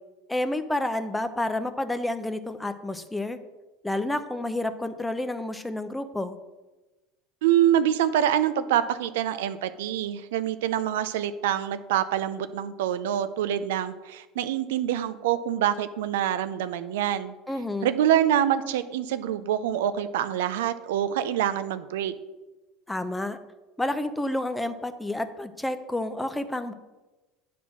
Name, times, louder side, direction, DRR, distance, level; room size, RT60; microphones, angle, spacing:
voice 1, 0.3-3.4 3.8-6.4 17.5-17.9 22.9-23.4 23.8-26.7, left 1 dB, 10° left, 10 dB, 0.7 m, -29 dB
voice 2, 7.4-17.3 17.8-22.1, right 10 dB, 85° right, 12 dB, 0.4 m, -25 dB
9.2 x 4.2 x 6.0 m, 1.2 s
supercardioid pair, 100°, 0 cm